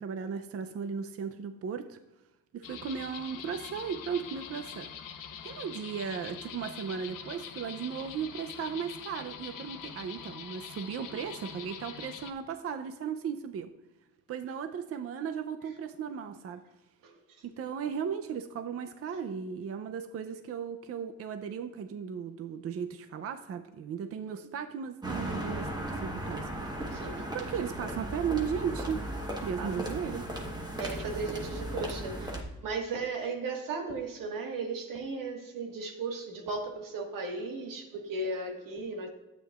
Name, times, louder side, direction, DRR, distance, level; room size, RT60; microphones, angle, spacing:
voice 1, 0.0-2.0 2.5-4.9 5.4-13.7 14.3-16.6 17.4-26.5 26.9-29.0 29.4-30.3, right 7 dB, 45° right, 8 dB, 0.5 m, -36 dB
sound 1, 2.6-12.3, left 7 dB, 80° left, 0.9 m, -44 dB
sound 2, 25.0-32.4, right 1 dB, 15° right, 1.1 m, -36 dB
voice 2, 26.9-27.3 29.6-29.7 30.8-39.1, right 3 dB, 90° right, 2 dB, 1.6 m, -36 dB
12.0 x 8.3 x 2.4 m, 1.0 s
wide cardioid pair, 155°, 32 cm